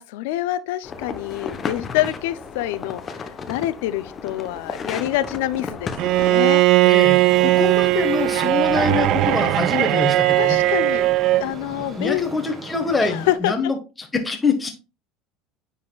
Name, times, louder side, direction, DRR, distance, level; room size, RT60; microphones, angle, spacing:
voice 1, 0.0-6.6 10.4-11.1 11.4-12.3 13.0-13.7, left 14 dB, 80° left, 0.4 m, -26 dB
sound 1, 0.8-6.4, left 5 dB, 35° left, 0.9 m, -33 dB
Bowed string instrument, 6.0-11.5, right 16 dB, 60° right, 0.4 m, -18 dB
voice 2, 6.8-10.6 12.0-14.8, left 4 dB, 15° left, 1.4 m, -25 dB
Traffic noise roadway noise, 7.1-13.4, right 4 dB, 25° right, 2.7 m, -38 dB
9.8 x 4.1 x 2.3 m
supercardioid pair, 95°, 0 cm